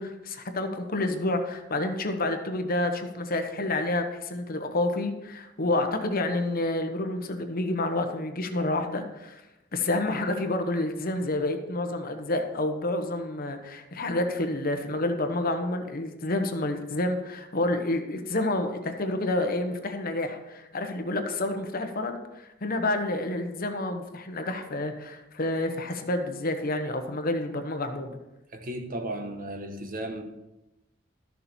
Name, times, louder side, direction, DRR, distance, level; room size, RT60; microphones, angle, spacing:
voice 1, 0.0-9.4 9.7-28.2, left 2 dB, 50° left, 1.1 m, -29 dB
voice 2, 28.5-30.2, right 1 dB, 45° right, 1.1 m, -35 dB
12.5 x 7.0 x 4.4 m
head